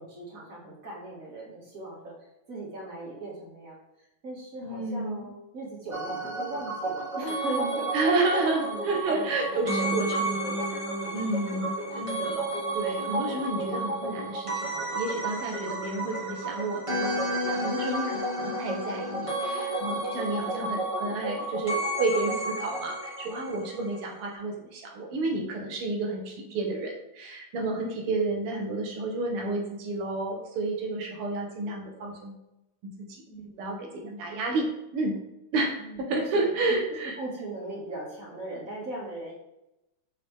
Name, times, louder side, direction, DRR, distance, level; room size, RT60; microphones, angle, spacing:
voice 1, 0.0-2.1 2.5-3.8 4.2-10.0 10.4-12.0 12.7-12.8 13.1-13.4 23.7-24.0 26.5-26.6 32.0-32.1 33.3-33.6 35.8-36.0 36.3-36.5 37.2-39.3, right 2 dB, 40° right, -6 dB, 2.2 m, -39 dB
voice 2, 4.6-5.3 7.9-10.3 11.1-32.4 33.0-33.1 33.6-35.2 35.5-37.2, right 2 dB, 90° right, 2 dB, 2.0 m, -31 dB
sound 1, 5.9-24.0 24.2-24.3, right 1 dB, 15° right, 1.3 m, -31 dB
6.7 x 4.2 x 3.4 m, 0.90 s
omnidirectional pair, 2.4 m